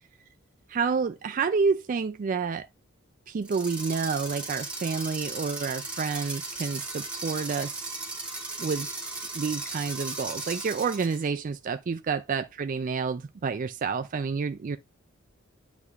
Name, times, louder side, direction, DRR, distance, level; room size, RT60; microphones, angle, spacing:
voice 1, 0.7-2.7 3.3-7.7 8.6-8.9 9.3-14.8, right 5 dB, 40° right, 0.3 m, -29 dB
sound 1, 3.4-11.3, right 2 dB, 5° right, 2.6 m, -36 dB
9.4 x 5.1 x 2.4 m
head